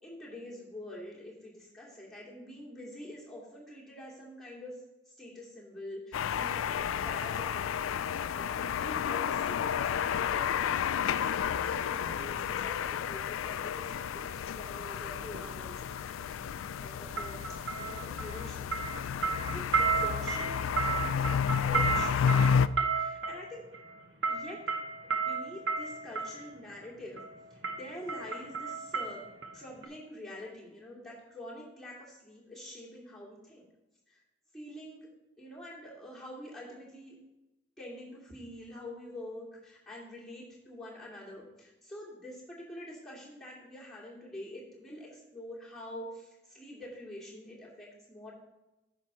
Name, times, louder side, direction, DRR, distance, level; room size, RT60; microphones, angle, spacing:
voice 1, 0.0-4.8 5.1-10.7 11.2-15.8 16.8-18.7 19.4-22.6 22.9-23.7 24.3-24.6 25.0-27.2 27.5-29.2 29.5-33.6 34.1-34.2 34.5-35.1 35.4-37.2 37.8-48.3, left 1 dB, ahead, -6 dB, 2.6 m, -46 dB
sound 1, 6.1-22.7, left 8 dB, 85° left, 0.3 m, -31 dB
sound 2, 15.2-15.4 17.2-18.5 18.7-26.4 27.2-27.4 27.6-29.5 29.8-29.9, right 5 dB, 65° right, 1.0 m, -33 dB
9.7 x 6.1 x 4.4 m, 1.0 s
head